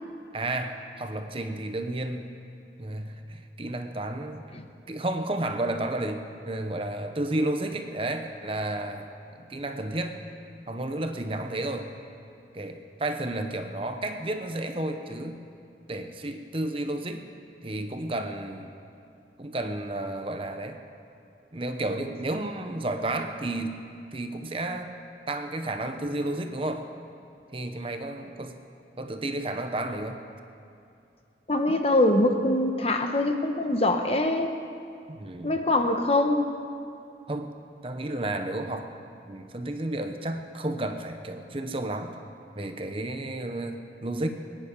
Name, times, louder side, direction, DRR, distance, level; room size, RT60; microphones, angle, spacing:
voice 1, 0.3-2.3 2.8-4.4 4.9-9.1 9.3-10.2 10.7-11.9 12.5-15.4 15.9-17.3 17.6-18.8 19.4-20.8 21.5-23.8 24.1-24.9 25.3-26.9 27.5-28.6 29.0-30.2 35.1-35.6 37.3-37.6 37.8-38.9 39.3-42.2 42.6-44.3, right 1 dB, 30° right, 6 dB, 0.9 m, -32 dB
voice 2, 31.5-34.5 35.4-36.5, left 1 dB, 35° left, 5 dB, 1.0 m, -23 dB
23.0 x 10.0 x 5.3 m, 2.6 s
head